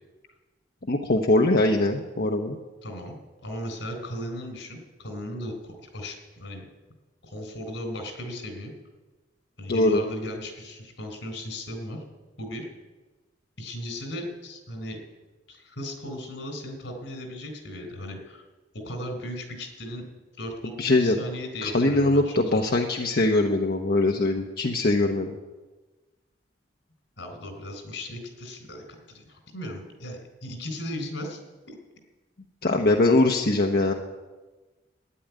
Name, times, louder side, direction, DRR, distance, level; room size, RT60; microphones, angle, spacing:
voice 1, 0.9-2.6 9.7-10.0 20.8-21.2 21.6-25.4 32.6-33.9, left 2 dB, 60° left, 2 dB, 1.0 m, -22 dB
voice 2, 2.8-3.2 3.4-6.7 7.2-8.7 9.6-12.0 12.4-12.7 13.6-15.0 15.5-18.4 18.7-20.0 20.4-22.6 27.2-31.4 31.7-31.8, left 1 dB, 90° left, 5 dB, 3.9 m, -36 dB
12.5 x 10.5 x 9.3 m, 1.2 s
head